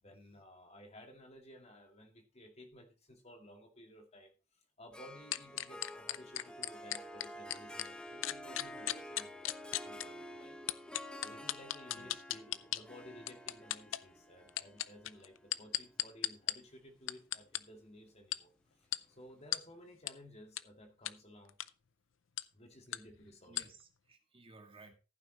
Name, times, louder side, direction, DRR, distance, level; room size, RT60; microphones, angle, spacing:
voice 1, 0.0-10.6 11.2-18.5 18.8-21.6 22.5-23.6, left 1 dB, 35° left, 4 dB, 2.2 m, -56 dB
Harp, 4.9-16.4, equal, 5° left, 1.2 m, -50 dB
sound 1, 5.3-7.9 8.2-10.0 10.7-12.8 13.3-14.0 14.5-16.5 17.1-17.6 18.3-18.4 18.9-19.0 19.5-19.6 20.1-20.2 20.6-20.7 21.1-21.2 21.5-21.7 22.4-22.5 22.9-23.0 23.6-23.7, left 14 dB, 80° left, 0.5 m, -36 dB
voice 2, 11.9-12.2 23.3-24.9, right 3 dB, 30° right, 5 dB, 1.9 m, -58 dB
15.0 x 9.2 x 3.0 m, 0.31 s
head